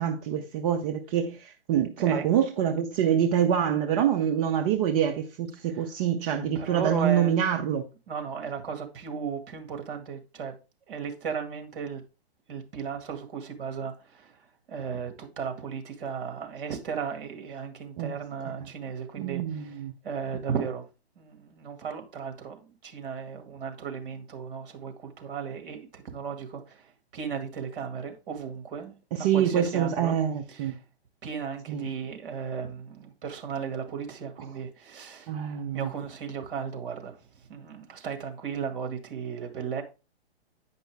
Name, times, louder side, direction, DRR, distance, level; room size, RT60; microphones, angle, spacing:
voice 1, 0.0-7.8 18.0-18.1 19.2-19.9 29.1-30.8 31.7-31.9 35.3-35.9, right 9 dB, 35° right, 0.8 m, -26 dB
voice 2, 2.0-2.3 5.7-5.9 6.5-7.4 8.1-10.6 10.9-12.0 12.5-20.8 21.2-28.9 29.2-30.2 30.5-30.8 31.2-35.3 35.7-39.8, right 6 dB, 55° right, 2.0 m, -35 dB
9.3 x 5.3 x 3.4 m
hypercardioid pair, 125°, 32 cm